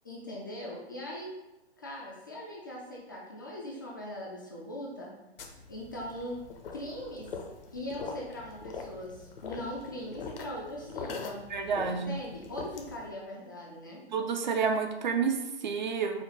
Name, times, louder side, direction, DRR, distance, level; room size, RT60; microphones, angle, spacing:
voice 1, 0.0-1.4 1.8-5.1 5.7-6.4 6.7-7.3 7.7-11.4 11.9-14.0, left 1 dB, 20° left, -4 dB, 0.3 m, -40 dB
sound 1, 5.4-13.1, left 4 dB, 55° left, 0.7 m, -43 dB
voice 2, 11.5-12.2 14.1-16.2, right 5 dB, 45° right, 5 dB, 0.4 m, -29 dB
4.9 x 2.2 x 4.0 m, 0.95 s
figure-of-eight pair, 120°, 33 cm